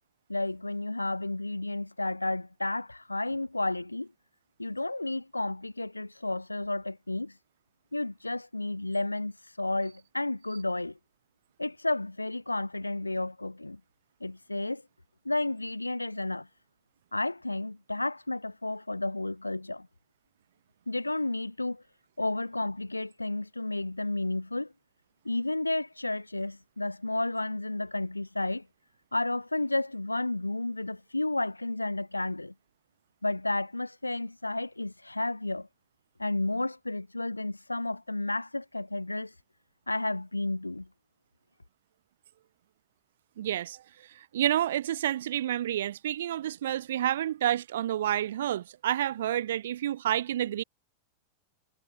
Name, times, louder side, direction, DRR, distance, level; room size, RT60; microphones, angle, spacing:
voice 1, 0.3-4.1 4.6-7.3 7.9-11.0 11.6-13.8 14.2-14.8 15.3-16.5 17.1-19.9 20.9-21.8 22.2-24.7 25.3-28.7 29.1-32.5 33.2-35.7 36.2-39.3 39.9-40.9, left 2 dB, 85° left, 2.0 m, -32 dB
voice 2, 43.4-43.8 44.1-50.6, right 12 dB, 60° right, 1.2 m, -29 dB
figure-of-eight pair, 90°, 0 cm